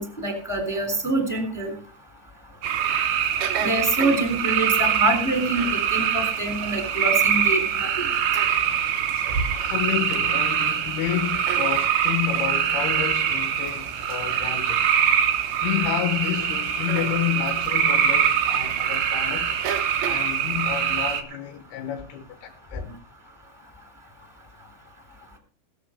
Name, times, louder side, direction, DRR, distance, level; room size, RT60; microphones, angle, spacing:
voice 1, 0.0-1.7 3.6-8.1, right 2 dB, 5° left, 1.8 m, -25 dB
sound 1, 2.6-21.2, right 8 dB, 70° right, 2.6 m, -24 dB
voice 2, 8.5-8.9 9.2-14.9 15.6-19.6 20.0-23.0, left 11 dB, 70° left, 2.6 m, -30 dB
19.5 x 7.1 x 5.0 m
omnidirectional pair, 5.8 m